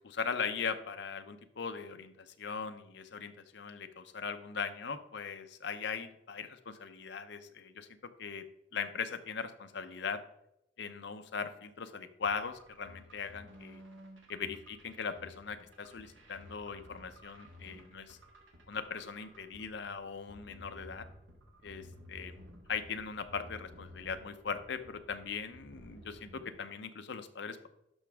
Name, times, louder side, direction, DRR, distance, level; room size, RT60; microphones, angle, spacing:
voice 1, 0.0-8.4 8.7-10.2 10.8-13.8 14.3-18.2 18.7-21.1 21.6-22.3 22.7-27.7, left 5 dB, 65° left, 9 dB, 0.7 m, -39 dB
sound 1, 12.2-26.5, equal, 85° right, 1.7 m, -54 dB
11.5 x 6.0 x 3.5 m, 0.83 s
head